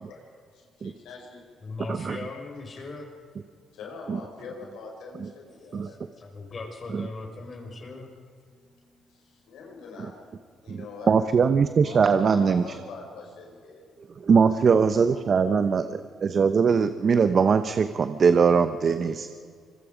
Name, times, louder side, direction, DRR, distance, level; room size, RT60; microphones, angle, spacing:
voice 1, 0.1-1.7 2.8-2.9 3.7-6.0 8.5-10.4 10.6-11.3 11.8-13.9 14.3-15.9 18.9-19.1, left 4 dB, 85° left, 0 dB, 5.4 m, -44 dB
voice 2, 1.6-3.1 5.8-8.1, left 3 dB, 40° left, 3 dB, 5.2 m, -39 dB
voice 3, 10.7-12.6 14.2-19.3, right 6 dB, 50° right, 10 dB, 0.9 m, -21 dB
25.0 x 22.0 x 5.2 m, 2.1 s
cardioid pair, 90°, 0 cm